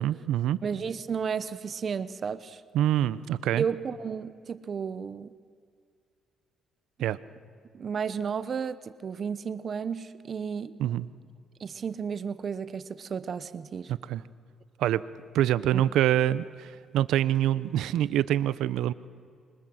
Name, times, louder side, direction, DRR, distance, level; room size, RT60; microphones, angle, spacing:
voice 1, 0.0-0.6 2.7-3.7 7.0-7.2 10.8-11.1 13.9-14.2 14.8-15.0 15.3-18.9, right 12 dB, 85° right, 16 dB, 0.8 m, -25 dB
voice 2, 0.6-2.6 3.6-5.3 7.7-10.7 11.6-13.9, right 6 dB, 50° right, 15 dB, 0.9 m, -33 dB
27.0 x 24.5 x 7.9 m, 2.2 s
cardioid pair, 90°, 0 cm